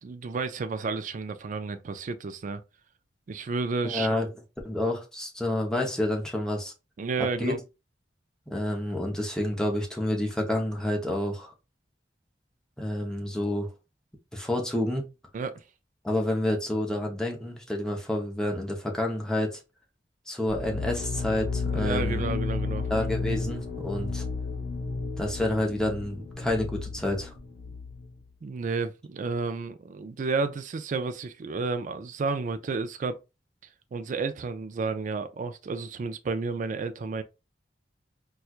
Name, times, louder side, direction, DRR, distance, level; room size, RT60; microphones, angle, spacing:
voice 1, 0.0-2.6 3.3-4.2 7.0-7.6 15.3-15.6 21.7-22.9 28.4-33.2 33.9-37.2, right 4 dB, 45° right, 0.4 m, -31 dB
voice 2, 3.8-4.3 4.6-6.7 7.4-7.5 8.5-11.5 12.8-13.7 14.3-15.1 16.0-19.6 20.3-22.2 22.9-24.2 25.2-27.3, left 1 dB, 5° left, 0.8 m, -29 dB
sound 1, 20.5-28.1, left 4 dB, 65° left, 1.0 m, -32 dB
4.3 x 2.3 x 2.4 m
head